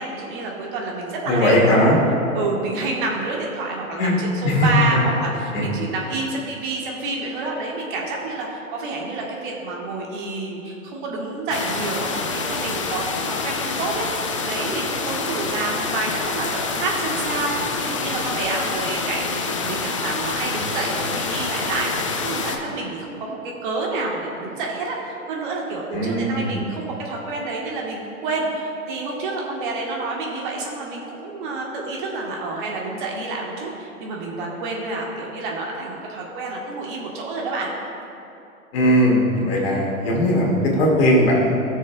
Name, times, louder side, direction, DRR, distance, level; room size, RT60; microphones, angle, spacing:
voice 1, 0.0-1.9 2.3-37.7, right 3 dB, 35° right, -2 dB, 1.4 m, -28 dB
voice 2, 1.3-2.0 4.0-4.1 4.4-4.7 5.5-5.7 25.9-26.6 38.7-41.5, equal, 45° left, -2 dB, 2.1 m, -18 dB
sound 1, 11.5-22.6, left 4 dB, 25° left, 0.4 m, -27 dB
18.0 x 6.5 x 2.3 m, 2.8 s
figure-of-eight pair, 115°, 43 cm